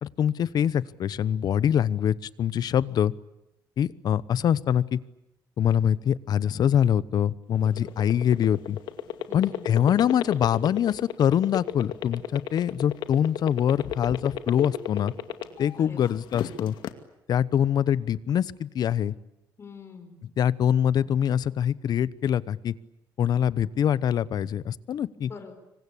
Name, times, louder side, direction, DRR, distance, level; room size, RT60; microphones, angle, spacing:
voice 1, 0.0-3.1 3.8-5.0 5.6-8.8 9.3-15.1 15.6-16.7 17.3-19.1 20.4-22.7 23.2-25.3, left 9 dB, 60° left, 19 dB, 1.0 m, -24 dB
sound 1, 7.5-15.8 16.2-16.9, left 11 dB, 85° left, 2.3 m, -31 dB
voice 2, 7.6-8.1 9.3-9.8 15.8-16.2 19.6-20.2 25.2-25.5, left 5 dB, 35° left, 7 dB, 5.1 m, -45 dB
26.5 x 24.5 x 8.5 m, 0.91 s
cardioid pair, 120°, 8 cm